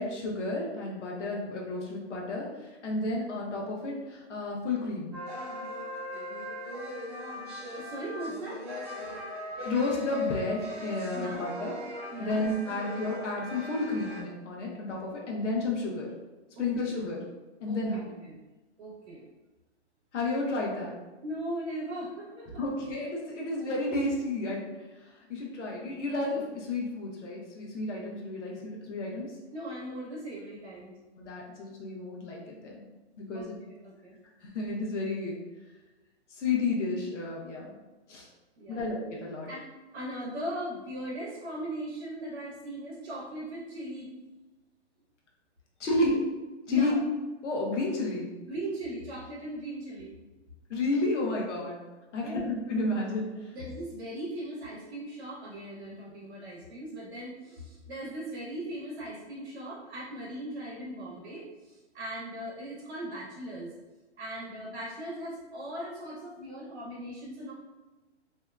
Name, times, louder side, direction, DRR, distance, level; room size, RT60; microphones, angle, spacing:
voice 1, 0.0-5.1 9.6-11.7 12.2-16.1 16.6-17.2 17.6-18.1 20.1-21.0 22.6-29.3 31.2-32.8 33.2-33.6 34.4-35.4 36.3-37.8 38.1-38.3 38.7-39.5 45.8-46.3 46.7-46.9 47.4-48.3 50.7-51.8 52.1-53.5, left 2 dB, 85° left, -2 dB, 0.8 m, -31 dB
sound 1, 5.1-14.2, equal, 25° right, 0.4 m, -39 dB
voice 2, 7.7-8.6 11.1-11.4 12.1-12.5 16.6-16.7 17.7-18.4 18.8-19.3 21.2-22.6 29.5-30.9 33.3-34.2 38.6-38.9 39.5-39.6 39.9-44.1 46.7-47.0 48.4-50.1 52.2-52.5 53.5-63.7 64.2-67.5, right 1 dB, 55° right, -6 dB, 0.9 m, -39 dB
2.8 x 2.2 x 2.2 m, 1.2 s
hypercardioid pair, 150°, 35 cm